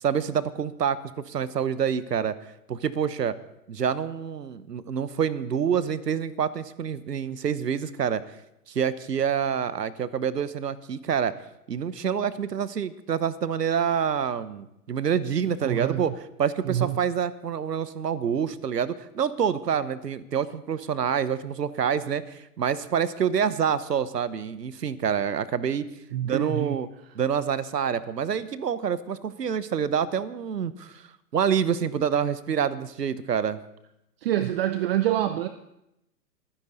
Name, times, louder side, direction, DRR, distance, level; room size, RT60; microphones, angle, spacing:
voice 1, 0.0-2.3 2.7-3.3 3.7-8.2 8.7-11.3 11.7-16.1 16.4-25.9 26.2-26.9 27.1-31.0 31.3-33.6, right 7 dB, 80° right, 16 dB, 1.0 m, -27 dB
voice 2, 15.6-16.0 16.7-17.0 26.1-26.8 34.2-35.5, right 12 dB, 40° right, 11 dB, 0.6 m, -26 dB
23.5 x 10.0 x 4.0 m, 0.85 s
figure-of-eight pair, 115°, 48 cm